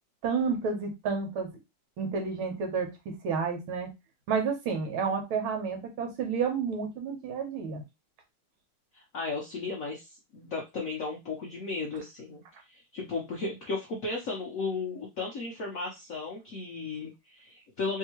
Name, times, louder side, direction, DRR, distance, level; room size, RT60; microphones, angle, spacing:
voice 1, 0.2-1.5 2.0-3.9 4.3-7.8, right 5 dB, 75° right, 3 dB, 1.7 m, -30 dB
voice 2, 8.9-18.0, left 3 dB, 70° left, 0 dB, 0.7 m, -35 dB
3.5 x 2.8 x 2.9 m, 0.23 s
omnidirectional pair, 2.4 m